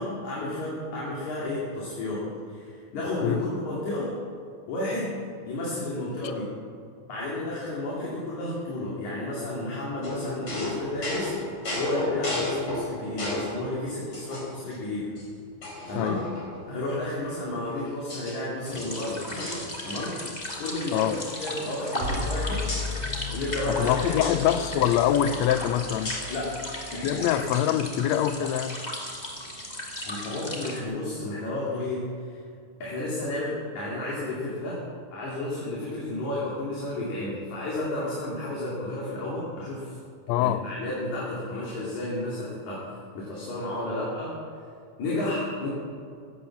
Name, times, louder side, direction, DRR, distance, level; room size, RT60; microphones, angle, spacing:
voice 1, 0.0-4.2 4.7-6.6 7.1-11.4 11.8-15.2 15.9-16.3 16.7-19.2 19.8-20.2 20.6-21.1 21.4-22.7 23.3-24.4 26.3-27.4 30.0-32.4 32.8-34.8 35.1-40.0 40.4-44.4 45.0-45.8, left 1 dB, 60° left, -6 dB, 3.9 m, -32 dB
sound 1, 10.0-13.6 14.1-14.8 15.2-15.3 15.6-16.7 17.4-18.4 18.7-20.2 20.5-20.7 21.0-22.3 22.7-22.9 24.2-24.4 26.1-26.4, left 2 dB, 40° left, 5.1 m, -34 dB
sound 2, 18.7-30.8, left 1 dB, 15° left, 1.8 m, -36 dB
sound 3, 22.0-27.5, left 3 dB, 15° right, 3.4 m, -35 dB
voice 2, 23.7-26.2 27.0-28.8 40.3-40.7, left 11 dB, 80° left, 12 dB, 1.5 m, -24 dB
16.0 x 10.5 x 7.3 m, 2.4 s
omnidirectional pair, 3.8 m